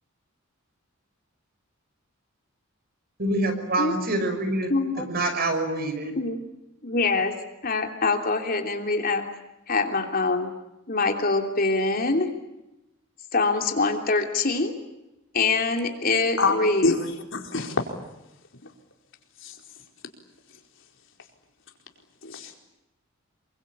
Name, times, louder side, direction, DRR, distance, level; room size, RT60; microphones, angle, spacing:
voice 1, 3.2-4.7 5.0-6.1, right 2 dB, 50° right, 7 dB, 5.8 m, -26 dB
voice 2, 4.7-5.1 6.1-6.4 6.8-7.3 7.6-9.2 9.7-10.5 10.9-12.3 13.3-14.8 15.3-17.0, left 3 dB, 45° left, 4 dB, 3.1 m, -24 dB
voice 3, 17.3-17.8 19.4-19.5 22.2-22.5, left 3 dB, 65° left, 3 dB, 4.6 m, -24 dB
27.5 x 24.0 x 8.7 m, 0.94 s
head